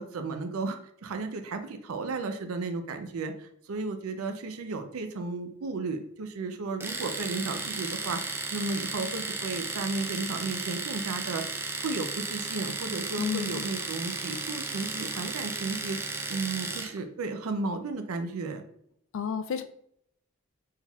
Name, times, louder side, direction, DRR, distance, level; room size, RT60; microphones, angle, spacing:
voice 1, 0.0-8.2 8.5-11.4 11.8-18.6, right 3 dB, 85° right, 7 dB, 0.5 m, -34 dB
Domestic sounds home sounds, 6.8-17.0, right 3 dB, 10° right, 0.3 m, -34 dB
voice 2, 13.2-13.7 19.1-19.6, left 7 dB, 65° left, 9 dB, 0.4 m, -31 dB
4.5 x 3.4 x 2.3 m, 0.70 s
head